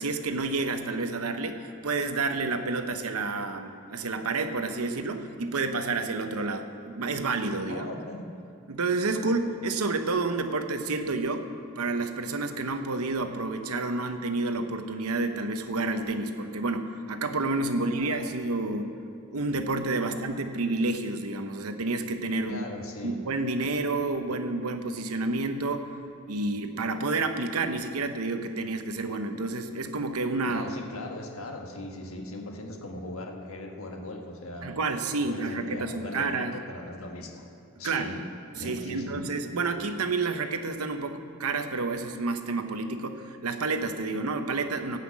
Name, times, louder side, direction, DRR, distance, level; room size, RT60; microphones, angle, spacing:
voice 1, 0.0-7.8 8.7-11.5 11.8-18.9 19.3-22.6 23.0-25.9 26.3-30.6 34.6-36.5 37.8-38.2 38.6-45.0, right 3 dB, 80° right, 8 dB, 0.9 m, -29 dB
voice 2, 7.6-8.3 17.7-18.3 19.8-20.2 22.5-23.2 30.4-37.5 37.8-38.3 38.5-39.3, left 1 dB, 65° left, 2 dB, 1.4 m, -39 dB
16.5 x 5.8 x 8.4 m, 2.5 s
head